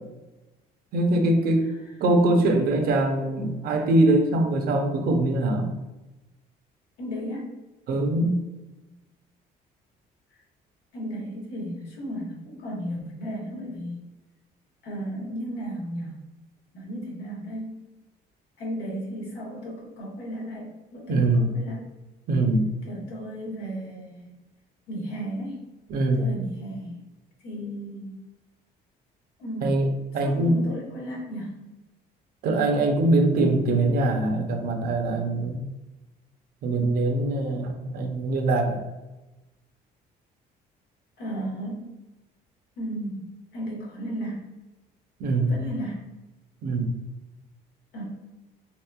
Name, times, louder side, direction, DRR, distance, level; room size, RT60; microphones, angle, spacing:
voice 1, 0.9-1.7 2.0-5.7 7.9-8.4 21.1-21.5 22.3-22.7 25.9-26.2 29.6-29.9 30.1-30.6 32.4-35.6 36.6-38.8 45.2-45.6 46.6-46.9, right 2 dB, 65° right, 4 dB, 0.6 m, -22 dB
voice 2, 1.6-2.0 7.0-7.5 10.3-10.4 10.9-14.0 14.8-16.2 16.7-17.8 18.6-21.9 22.8-24.4 24.9-25.6 26.1-27.0 27.4-28.2 29.4-29.8 30.2-31.6 41.2-41.9 42.8-44.5 45.5-46.1 47.9-48.0, equal, 80° left, -3 dB, 1.1 m, -35 dB
2.9 x 2.8 x 2.2 m, 1.0 s
cardioid pair, 110°, 17 cm